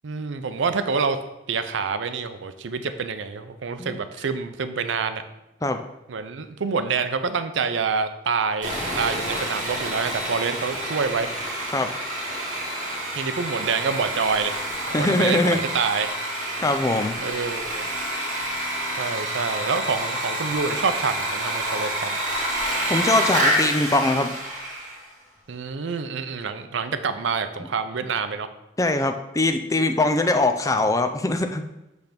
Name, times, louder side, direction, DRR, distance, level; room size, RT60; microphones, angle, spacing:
voice 1, 0.0-1.2 1.5-5.2 6.1-11.3 13.2-14.5 14.8-16.1 17.2-17.9 19.0-22.2 25.5-28.5, right 5 dB, 80° right, 10 dB, 0.5 m, -27 dB
Sawing, 8.6-25.0, right 1 dB, 45° right, 1.7 m, -28 dB
voice 2, 14.9-15.6 16.6-17.2 22.9-24.3 28.8-31.6, left 2 dB, 15° left, 7 dB, 0.4 m, -22 dB
8.2 x 3.4 x 5.1 m, 0.92 s
head